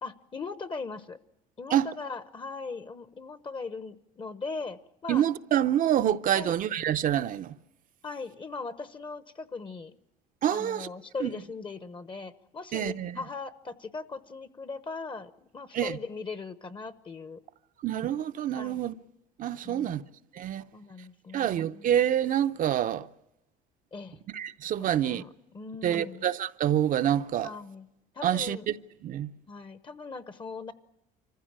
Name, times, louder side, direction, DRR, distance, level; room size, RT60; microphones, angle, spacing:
voice 1, 0.0-1.2 1.6-5.2 6.3-6.6 8.0-10.0 10.5-17.4 18.6-18.8 19.6-20.1 20.7-21.9 23.9-24.2 24.8-26.2 27.4-27.9 28.1-28.7 29.5-30.7, left 4 dB, 30° left, 1.0 m, -39 dB
voice 2, 5.1-7.5 10.4-10.9 11.2-11.3 12.7-13.2 15.7-16.0 17.8-18.9 19.4-20.0 20.3-20.6 21.3-23.1 24.3-25.2 25.8-27.5 28.2-28.7 29.0-29.3, right 11 dB, 50° right, 0.7 m, -27 dB
25.0 x 15.0 x 8.8 m
supercardioid pair, 95°, 18 cm